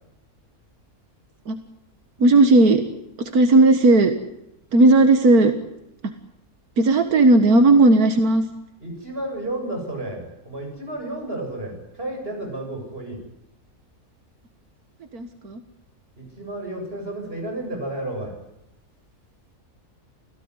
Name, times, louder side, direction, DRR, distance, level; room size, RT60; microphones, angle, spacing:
voice 1, 2.2-2.8 3.2-4.1 4.7-5.5 6.8-8.4 15.1-15.6, right 2 dB, 85° right, 8 dB, 2.1 m, -15 dB
voice 2, 8.8-13.2 16.2-18.3, right 1 dB, 40° right, 2 dB, 8.0 m, -32 dB
27.5 x 16.5 x 9.8 m, 0.84 s
omnidirectional pair, 1.5 m